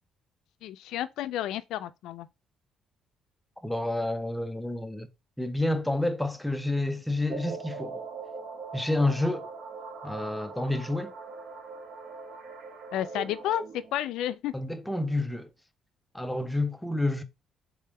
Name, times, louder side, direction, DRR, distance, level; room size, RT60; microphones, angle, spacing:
voice 1, 0.6-2.3 12.9-14.5, left 12 dB, 85° left, 0.3 m, -31 dB
voice 2, 3.6-5.1 5.4-8.0 8.7-9.5 10.0-11.1 14.5-15.5 16.1-17.2, left 2 dB, 5° left, 0.5 m, -29 dB
sound 1, 7.3-13.9, right 4 dB, 70° right, 0.9 m, -41 dB
3.6 x 3.4 x 3.2 m
cardioid pair, 140°, 0 cm